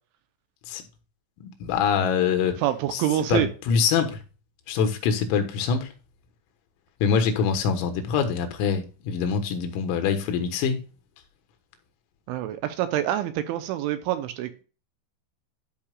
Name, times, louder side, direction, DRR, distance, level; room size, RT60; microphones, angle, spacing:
voice 1, 1.4-2.6 2.9-3.0 3.3-4.2 4.7-5.9 7.0-10.8, left 6 dB, 85° left, 4.0 m, -24 dB
voice 2, 2.6-3.5 12.3-14.6, right 12 dB, 80° right, 3.0 m, -26 dB
13.0 x 5.8 x 2.4 m
omnidirectional pair, 5.9 m